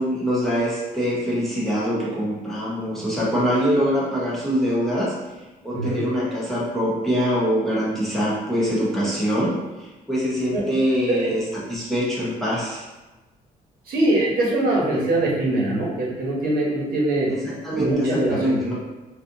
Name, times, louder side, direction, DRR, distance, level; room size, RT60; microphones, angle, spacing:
voice 1, 0.0-5.1 5.6-11.4 11.7-12.8 17.3-18.7, equal, ahead, -7 dB, 0.7 m, -24 dB
voice 2, 13.9-17.3 17.7-18.6, right 2 dB, 75° right, -4 dB, 1.0 m, -22 dB
4.2 x 2.4 x 2.6 m, 1.1 s
cardioid pair, 180°, 15 cm